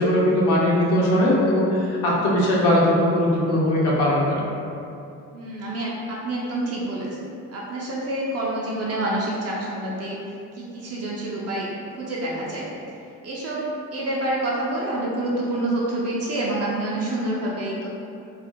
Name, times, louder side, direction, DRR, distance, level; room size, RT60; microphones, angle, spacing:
voice 1, 0.0-4.5, left 1 dB, 70° left, -5 dB, 0.7 m, -20 dB
voice 2, 5.3-10.2 10.5-12.7 13.2-13.6 13.9-17.9, right 1 dB, 35° right, -5 dB, 0.5 m, -27 dB
2.5 x 2.0 x 2.7 m, 2.6 s
figure-of-eight pair, 45°, 48 cm